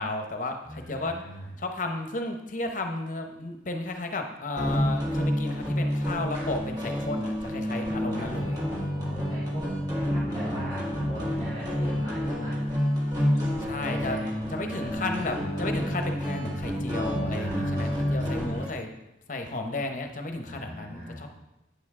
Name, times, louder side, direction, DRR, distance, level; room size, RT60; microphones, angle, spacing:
voice 1, 0.0-1.2 1.6-8.6 13.6-14.2 14.5-18.9 19.3-21.3, left 2 dB, 45° left, 5 dB, 0.8 m, -33 dB
voice 2, 0.6-1.5 7.9-12.6 13.9-15.1 17.3-18.4 20.4-21.3, equal, 40° right, -9 dB, 2.3 m, -39 dB
sound 1, 4.6-18.7, equal, 20° right, 1.7 m, -29 dB
9.1 x 6.9 x 3.6 m, 0.92 s
head